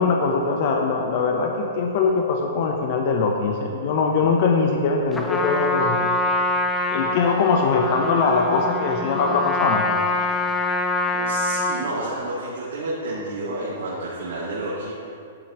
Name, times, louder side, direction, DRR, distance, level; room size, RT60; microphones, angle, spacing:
voice 1, 0.0-6.1 6.9-9.9, left 4 dB, 45° left, 2 dB, 0.7 m, -21 dB
Trumpet, 5.1-12.0, left 2 dB, 10° left, 0.6 m, -25 dB
voice 2, 11.1-15.1, right 2 dB, 75° right, -7 dB, 1.9 m, -30 dB
11.0 x 8.7 x 3.0 m, 2.5 s
hypercardioid pair, 155°, 0 cm